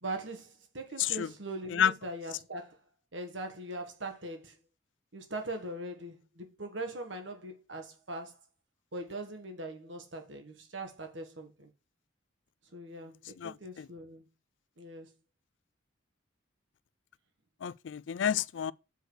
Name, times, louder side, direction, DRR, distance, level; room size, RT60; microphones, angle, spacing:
voice 1, 0.0-2.8 3.1-4.5 5.1-8.4 8.9-11.7 12.7-14.2 14.8-15.1, right 2 dB, 70° right, 1.6 m, -41 dB
voice 2, 13.4-13.8 17.6-18.7, left 8 dB, 70° left, 0.4 m, -30 dB
7.9 x 5.0 x 6.3 m
head